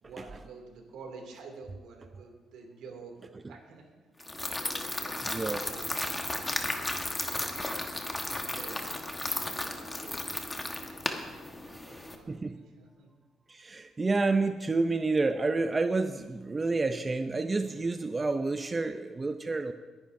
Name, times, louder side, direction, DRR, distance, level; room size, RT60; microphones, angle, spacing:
voice 1, 0.0-3.8 4.6-6.2 7.2-8.0 8.2-8.9 9.3-10.4 11.5-13.1, right 4 dB, 80° right, 2 dB, 2.4 m, -49 dB
sound 1, 4.2-12.2, left 2 dB, 15° left, 1.2 m, -34 dB
voice 2, 5.3-5.6 12.3-12.6 13.5-19.7, right 3 dB, 25° right, 8 dB, 0.5 m, -29 dB
22.5 x 10.5 x 2.6 m, 1.3 s
cardioid pair, 90°, 0 cm